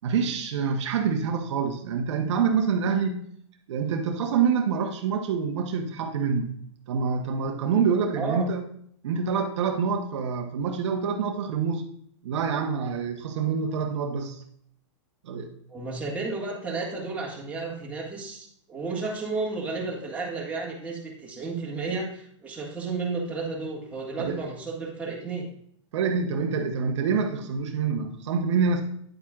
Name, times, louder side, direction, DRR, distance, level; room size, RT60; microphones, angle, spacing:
voice 1, 0.0-3.2 3.7-6.5 6.9-8.7 9.0-11.8 12.2-14.4 15.2-15.5 24.2-24.4 25.9-28.8, right 6 dB, 65° right, 5 dB, 0.9 m, -26 dB
voice 2, 8.2-8.5 15.7-25.5, right 3 dB, 10° right, -3 dB, 1.8 m, -32 dB
9.2 x 8.4 x 2.4 m, 0.66 s
hypercardioid pair, 140°, 16 cm